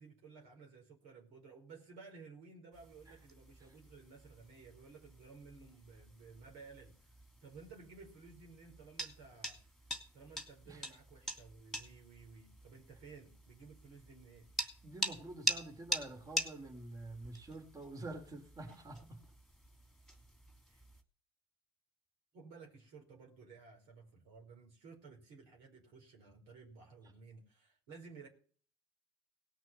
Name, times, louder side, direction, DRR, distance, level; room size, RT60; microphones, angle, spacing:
voice 1, 0.0-7.1 7.4-9.6 10.1-14.5 20.7-20.8 22.3-28.3, right 4 dB, 65° right, 1 dB, 5.0 m, -56 dB
sound 1, 2.7-21.0, left 1 dB, ahead, 2.8 m, -45 dB
voice 2, 14.8-19.2, right 2 dB, 30° right, 3 dB, 3.6 m, -47 dB
18.0 x 6.2 x 7.0 m, 0.42 s
hypercardioid pair, 65°, 13 cm